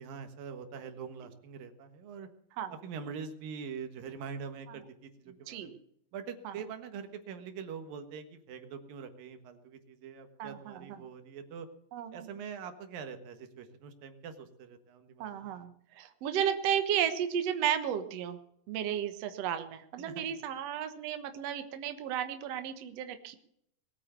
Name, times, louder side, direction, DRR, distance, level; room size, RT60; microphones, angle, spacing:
voice 1, 0.0-2.3 2.8-5.8 6.1-11.7 12.1-15.5 20.0-20.3, right 6 dB, 85° right, 8 dB, 3.3 m, -44 dB
voice 2, 10.4-11.0 11.9-12.3 15.2-15.7 16.0-18.4 18.7-23.4, right 9 dB, 60° right, 8 dB, 2.0 m, -33 dB
21.0 x 8.8 x 6.7 m, 0.70 s
omnidirectional pair, 4.0 m